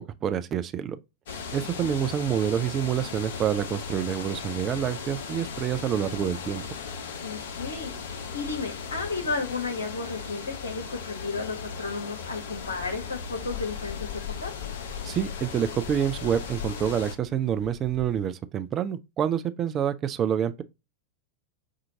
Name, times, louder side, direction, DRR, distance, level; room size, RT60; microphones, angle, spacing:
voice 1, 0.2-1.0 1.5-6.6 15.0-20.6, right 9 dB, 30° right, 0.4 m, -27 dB
sound 1, 1.3-17.1, left 5 dB, 60° left, 0.7 m, -37 dB
voice 2, 7.2-7.9 8.3-14.5, left 4 dB, 75° left, 1.1 m, -33 dB
sound 2, 12.5-18.2, left 11 dB, 25° left, 1.2 m, -41 dB
5.5 x 2.4 x 2.7 m
figure-of-eight pair, 90°, 0 cm